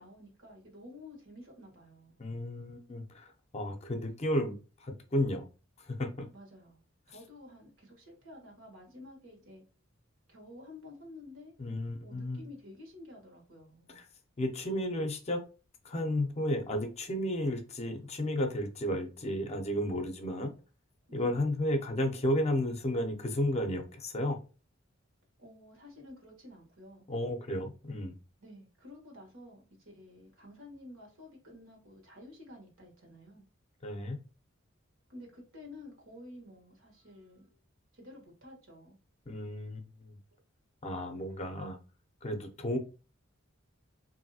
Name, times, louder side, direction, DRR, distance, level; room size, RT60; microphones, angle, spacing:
voice 1, 0.0-2.2 6.3-9.6 10.3-11.5 12.0-14.0 21.1-21.6 25.4-27.1 28.4-33.4 35.1-37.6 37.9-39.0 40.3-40.4, left 1 dB, 80° right, 1.3 m, -51 dB
voice 2, 2.2-5.4 5.9-6.3 11.6-12.4 14.0-14.1 14.4-15.4 15.8-20.5 21.1-24.4 27.1-28.1 33.8-34.2 39.3-40.1 40.8-41.8 42.2-42.8, left 1 dB, 30° left, 0.5 m, -33 dB
3.0 x 2.6 x 2.7 m
head